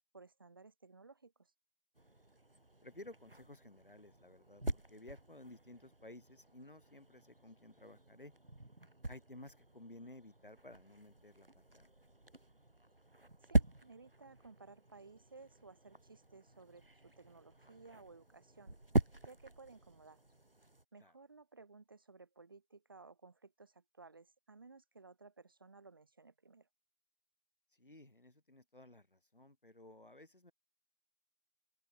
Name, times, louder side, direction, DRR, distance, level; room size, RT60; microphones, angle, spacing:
voice 1, 0.1-1.5 13.5-18.7 19.2-20.2 20.9-26.7, right 4 dB, 25° right, 4.9 m, -58 dB
sound 1, 2.0-20.8, right 1 dB, 70° right, 3.3 m, -42 dB
voice 2, 2.8-8.3 9.1-11.9 21.0-21.1 27.7-30.5, left 1 dB, 65° left, 6.9 m, -55 dB
open air
figure-of-eight pair, 170°, 29 cm